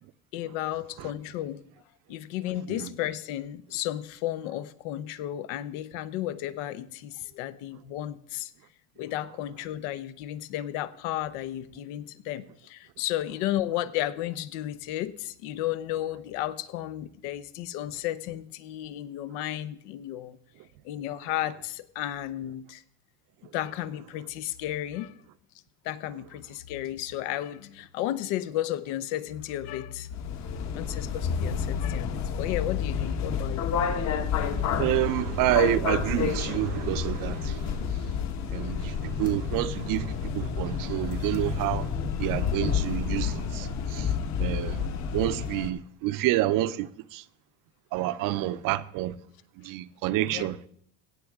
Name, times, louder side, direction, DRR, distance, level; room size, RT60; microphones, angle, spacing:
voice 1, 0.3-1.6 2.1-8.5 9.0-20.4 20.8-22.8 23.5-25.1 25.8-30.1 30.7-33.7 50.3-50.5, left 13 dB, 80° left, 0.9 m, -33 dB
sound 1, 30.1-45.7, left 6 dB, 45° left, 1.3 m, -30 dB
voice 2, 34.8-37.8 38.5-41.9 42.2-44.1 44.4-44.9 45.1-47.2 47.9-49.1 49.6-50.6, right 15 dB, 60° right, 0.7 m, -28 dB
16.5 x 7.7 x 3.6 m
supercardioid pair, 120°, 37 cm